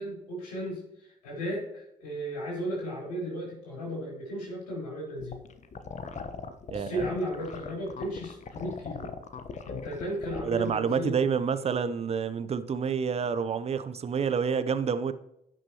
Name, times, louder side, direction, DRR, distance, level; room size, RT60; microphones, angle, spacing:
voice 1, 0.0-5.4 6.7-9.1 9.6-11.7, equal, 80° left, -4 dB, 4.3 m, -35 dB
sound 1, 5.2-10.7, left 5 dB, 35° left, 1.1 m, -39 dB
voice 2, 6.7-7.1 10.4-15.1, right 6 dB, 30° right, 12 dB, 0.8 m, -28 dB
17.0 x 6.2 x 3.0 m, 0.80 s
figure-of-eight pair, 50°, 20 cm